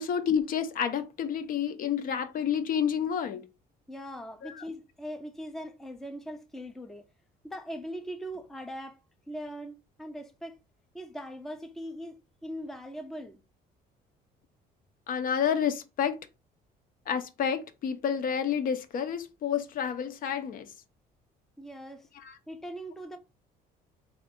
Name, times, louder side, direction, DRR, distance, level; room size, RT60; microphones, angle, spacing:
voice 1, 0.0-3.5 4.4-4.6 15.1-16.2 17.1-20.7 22.2-22.4, left 8 dB, 55° left, 0.6 m, -29 dB
voice 2, 3.9-7.1 7.4-9.0 9.3-10.6 10.9-13.4 21.6-22.1 22.5-23.2, equal, ahead, 0.4 m, -40 dB
3.0 x 2.4 x 3.5 m
cardioid pair, 110°, 17 cm